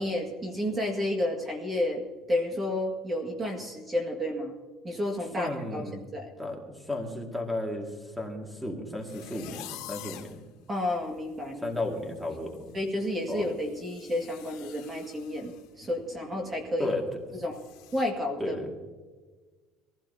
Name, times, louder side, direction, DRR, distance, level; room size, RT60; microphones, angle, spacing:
voice 1, 0.0-2.0 2.3-4.6 4.8-6.3 10.7-11.7 12.7-16.9 17.4-17.6 17.9-18.5, left 1 dB, 20° right, 2 dB, 2.0 m, -31 dB
voice 2, 5.4-6.1 6.4-10.4 11.6-12.7 13.3-13.5 16.8-17.0 18.4-18.7, left 2 dB, ahead, 1 dB, 2.1 m, -34 dB
sound 1, 9.0-10.4 11.0-11.1 11.4-11.7 12.0-15.7 16.0-16.2 16.6-16.7 17.5-18.0, left 13 dB, 80° left, 1.6 m, -47 dB
22.5 x 15.5 x 2.8 m, 1.4 s
cardioid pair, 155°, 0 cm